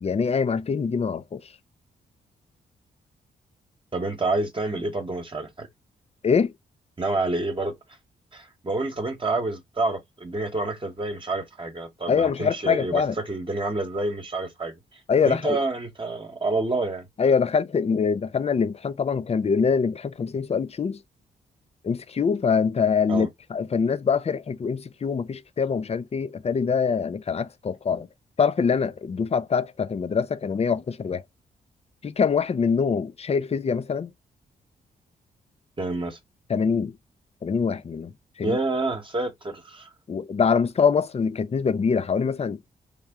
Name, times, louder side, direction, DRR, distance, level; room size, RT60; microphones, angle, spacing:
voice 1, 0.0-1.4 6.2-6.5 12.1-13.1 15.1-15.6 17.2-21.0 21.8-28.1 28.4-31.2 32.0-34.1 36.5-37.0 37.4-38.1 38.4-38.6 40.1-42.6, left 6 dB, 35° left, 0.5 m, -24 dB
voice 2, 3.9-5.7 7.0-7.7 8.3-17.1 23.1-23.3 35.8-36.2 38.4-39.9, right 2 dB, 30° right, 1.1 m, -28 dB
3.4 x 2.7 x 3.5 m
supercardioid pair, 50°, 18 cm